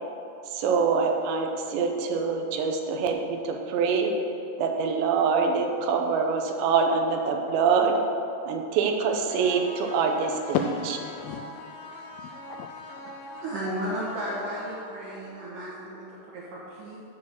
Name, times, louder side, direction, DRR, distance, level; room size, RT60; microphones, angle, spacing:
voice 1, 0.5-4.1 4.6-8.0 8.5-10.6, right 5 dB, 85° right, 3 dB, 3.1 m, -25 dB
sound 1, 9.3-15.3, left 2 dB, 70° left, 2.8 m, -42 dB
voice 2, 10.5-11.7 12.1-13.4, left 8 dB, 90° left, 4 dB, 2.2 m, -34 dB
voice 3, 13.4-16.1 16.3-17.0, right 1 dB, 60° right, -7 dB, 2.7 m, -34 dB
13.5 x 4.7 x 7.0 m, 2.7 s
omnidirectional pair, 5.0 m